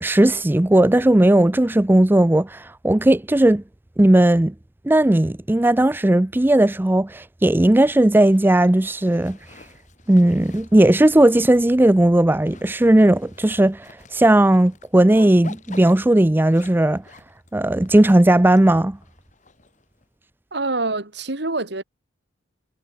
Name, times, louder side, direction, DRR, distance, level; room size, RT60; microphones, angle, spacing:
voice 1, 0.0-3.6 4.0-4.5 4.8-9.4 10.1-17.0 17.5-19.0, right 1 dB, 10° right, 0.5 m, -16 dB
Zipper (clothing), 7.6-20.1, left 3 dB, 40° left, 2.5 m, -48 dB
voice 2, 20.5-21.8, right 2 dB, 65° right, 2.5 m, -25 dB
head